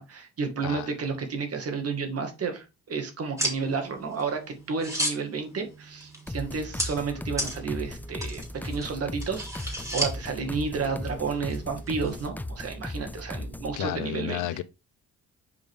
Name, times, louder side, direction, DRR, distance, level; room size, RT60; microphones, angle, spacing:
voice 1, 0.0-14.5, right 5 dB, 50° right, 2.1 m, -31 dB
sound 1, 3.4-12.3, right 1 dB, 10° right, 3.6 m, -36 dB
sound 2, 6.3-13.8, left 1 dB, 5° left, 0.5 m, -37 dB
voice 2, 13.8-14.6, left 13 dB, 85° left, 0.6 m, -32 dB
7.1 x 5.1 x 3.7 m
cardioid pair, 90°, 30 cm